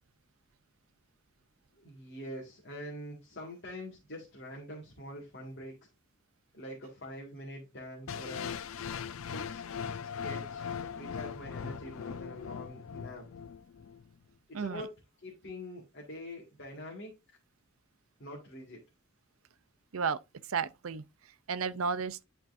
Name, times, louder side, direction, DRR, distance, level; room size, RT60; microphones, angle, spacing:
voice 1, 1.8-5.9 6.5-8.5 9.3-9.6 10.2-10.7 10.9-13.3 14.5-14.9 15.2-17.2 18.2-18.8, left 1 dB, 55° left, 2.1 m, -44 dB
sound 1, 8.1-14.1, left 7 dB, 80° left, 0.5 m, -40 dB
voice 2, 14.5-14.9 19.9-22.2, right 6 dB, 90° right, 0.6 m, -34 dB
11.0 x 4.5 x 2.6 m
head